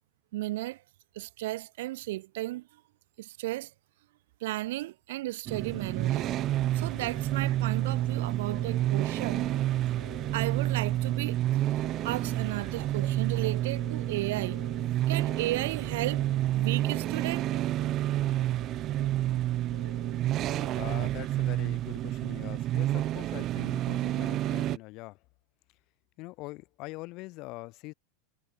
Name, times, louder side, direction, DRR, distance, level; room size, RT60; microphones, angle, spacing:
voice 1, 0.3-0.8 1.1-2.8 3.2-3.7 4.4-6.3 6.7-9.5 10.3-11.7 12.0-14.6 15.1-17.5, right 17 dB, 75° right, 0.8 m, -34 dB
sound 1, 5.5-24.8, right 14 dB, 40° right, 0.3 m, -29 dB
sound 2, 5.6-20.7, left 14 dB, 80° left, 1.8 m, -52 dB
voice 2, 20.7-25.2 26.2-27.9, left 22 dB, 50° left, 1.4 m, -43 dB
supercardioid pair, 120°, 0 cm